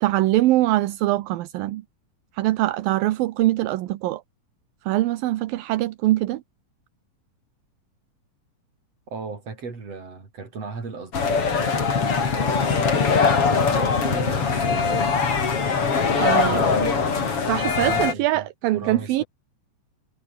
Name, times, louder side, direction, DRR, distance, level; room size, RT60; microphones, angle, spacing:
voice 1, 0.0-1.8 2.3-4.2 4.9-6.4 16.2-16.9 17.5-19.2, right 16 dB, 80° right, 2.7 m, -23 dB
voice 2, 9.1-13.0 13.5-15.3 16.3-19.3, right 4 dB, 45° right, 6.3 m, -36 dB
sound 1, 11.1-18.1, left 5 dB, 40° left, 4.1 m, -21 dB
omnidirectional pair, 4.1 m